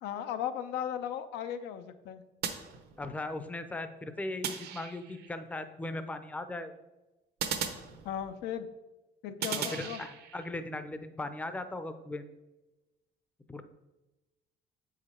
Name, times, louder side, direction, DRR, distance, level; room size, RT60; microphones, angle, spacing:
voice 1, 0.0-2.2 8.0-8.7 9.2-10.0, left 9 dB, 85° left, 9 dB, 0.6 m, -36 dB
sound 1, 2.4-3.3 4.4-5.3 7.4-8.5 9.4-10.5, right 7 dB, 70° right, 0.9 m, -37 dB
voice 2, 3.0-6.8 9.6-12.2 13.5-13.6, left 2 dB, 10° left, 10 dB, 0.5 m, -38 dB
7.6 x 4.9 x 4.3 m, 1.1 s
cardioid pair, 110°, 17 cm